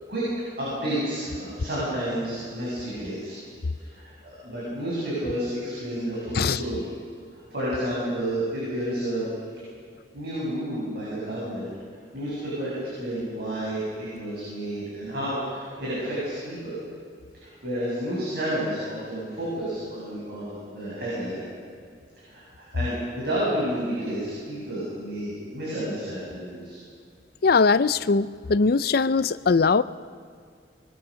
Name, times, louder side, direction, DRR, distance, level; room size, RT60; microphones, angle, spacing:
voice 1, 0.6-3.4 3.8-4.1 4.4-6.9 7.3-9.3 10.1-11.7 12.1-16.8 17.3-21.4 22.2-26.8, right 1 dB, 60° right, -7 dB, 7.8 m, -30 dB
voice 2, 27.4-29.8, left 4 dB, 60° left, 15 dB, 0.5 m, -21 dB
24.0 x 22.0 x 6.4 m, 2.1 s
head